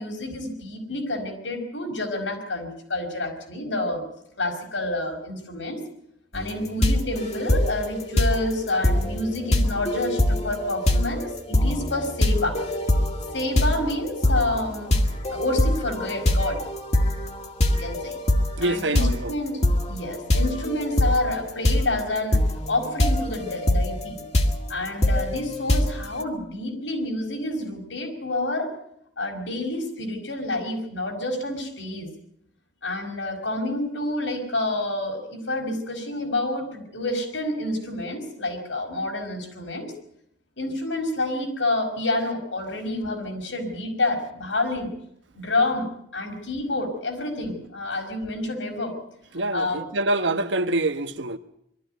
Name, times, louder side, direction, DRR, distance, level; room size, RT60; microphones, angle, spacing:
voice 1, 0.0-4.0 4.4-5.8 6.3-12.6 13.3-15.0 15.3-16.6 17.7-18.2 18.6-19.6 19.9-22.4 22.7-24.2 24.7-28.7 29.2-32.1 32.8-39.9 40.6-44.9 45.3-48.9 49.5-49.8, left 2 dB, 85° left, 5.5 m, -28 dB
sound 1, 6.3-26.2, left 1 dB, 35° left, 2.0 m, -24 dB
voice 2, 18.6-19.3 49.3-51.4, right 2 dB, 75° right, 1.2 m, -25 dB
22.5 x 13.5 x 9.3 m
head